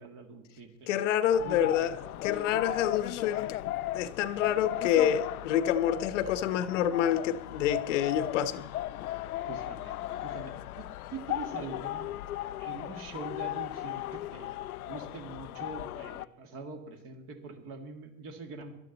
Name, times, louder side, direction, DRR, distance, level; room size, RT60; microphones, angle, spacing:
voice 1, 0.0-1.0 1.4-1.7 9.4-12.1 12.6-18.7, right 4 dB, 30° right, 2.1 m, -44 dB
voice 2, 0.9-1.9 2.2-3.5 3.9-8.7, left 10 dB, 55° left, 1.1 m, -27 dB
sound 1, 1.3-16.3, left 14 dB, 80° left, 0.7 m, -36 dB
18.5 x 12.0 x 4.0 m
hypercardioid pair, 140°, 43 cm